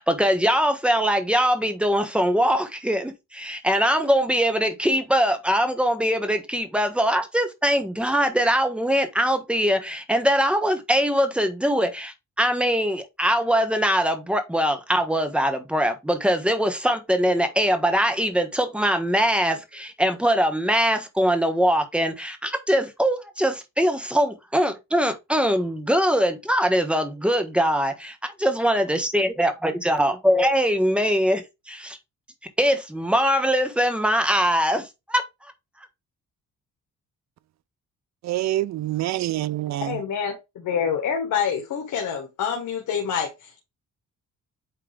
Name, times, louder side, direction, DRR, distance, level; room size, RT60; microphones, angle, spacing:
voice 1, 0.0-27.9 28.4-32.0 32.6-35.2, equal, 5° right, 1.1 m, -22 dB
voice 2, 38.2-40.0, right 14 dB, 65° right, 0.5 m, -26 dB
voice 3, 39.8-43.6, left 7 dB, 85° left, 1.6 m, -27 dB
8.8 x 3.3 x 3.4 m
cardioid pair, 145°, 30 cm